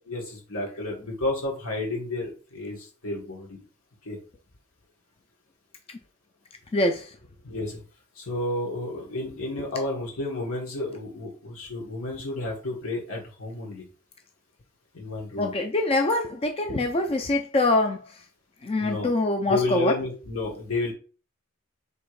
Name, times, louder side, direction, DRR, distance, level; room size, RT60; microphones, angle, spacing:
voice 1, 0.1-3.6 4.0-4.2 7.4-7.8 8.2-13.8 14.9-15.5 18.8-19.1 19.4-20.9, left 2 dB, 90° left, -2 dB, 1.7 m, -31 dB
voice 2, 6.7-7.1 15.4-18.0 18.6-19.9, left 2 dB, 30° left, 5 dB, 0.4 m, -24 dB
3.4 x 2.9 x 4.6 m, 0.36 s
head